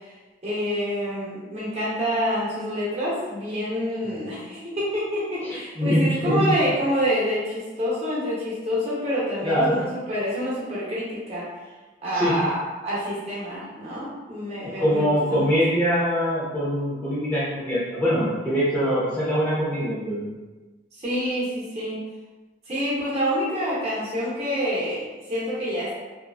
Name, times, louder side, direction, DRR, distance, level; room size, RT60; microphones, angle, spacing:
voice 1, 0.4-11.5 12.0-15.5 20.9-22.0 22.7-25.9, equal, 35° right, -8 dB, 0.8 m, -27 dB
voice 2, 5.4-6.4 9.4-9.8 12.1-12.3 14.8-20.3, equal, 10° left, -10 dB, 0.5 m, -23 dB
2.8 x 2.4 x 2.3 m, 1.2 s
head